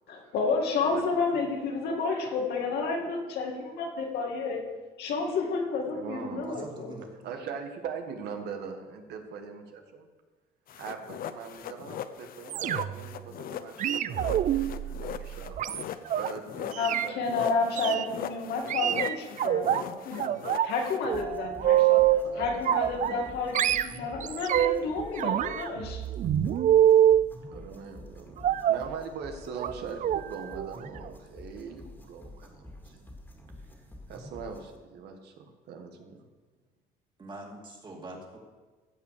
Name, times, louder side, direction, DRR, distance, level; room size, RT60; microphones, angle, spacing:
voice 1, 0.1-4.6 5.0-7.0 16.8-20.3 20.6-22.0 22.4-26.0, left 4 dB, 75° left, 1 dB, 2.3 m, -30 dB
voice 2, 5.9-6.5 7.2-10.1 10.8-14.7 15.0-18.3 21.7-23.3 27.5-33.0 34.1-36.2, right 6 dB, 75° right, 5 dB, 1.6 m, -42 dB
voice 3, 6.4-7.1 37.2-38.4, right 2 dB, 25° right, 0 dB, 2.6 m, -43 dB
sound 1, 10.7-21.2, left 9 dB, 60° left, 0.7 m, -40 dB
sound 2, 12.5-13.1 13.8-16.3 16.7-17.1 17.8-18.1 18.7-19.8 20.2-20.7 21.0-22.3 22.6-23.3 23.5-24.9 25.2-27.3 28.4-28.9 29.6-29.7 30.0-30.2 30.5-30.7 31.0-31.1, right 11 dB, 50° right, 0.4 m, -25 dB
sound 3, 21.1-34.8, left 1 dB, 10° left, 2.3 m, -48 dB
15.5 x 5.4 x 6.8 m, 1.3 s
cardioid pair, 110°, 17 cm